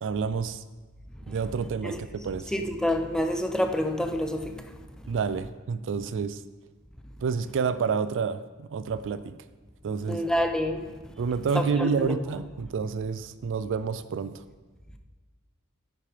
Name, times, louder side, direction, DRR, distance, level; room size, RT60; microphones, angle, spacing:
voice 1, 0.0-0.6 1.3-2.5 5.1-6.4 7.2-9.4 9.8-10.2 11.2-14.4, right 5 dB, 60° right, 0.4 m, -29 dB
voice 2, 2.5-4.5 10.1-10.8 11.5-12.2, left 1 dB, 5° left, 0.5 m, -27 dB
10.0 x 8.6 x 3.3 m
head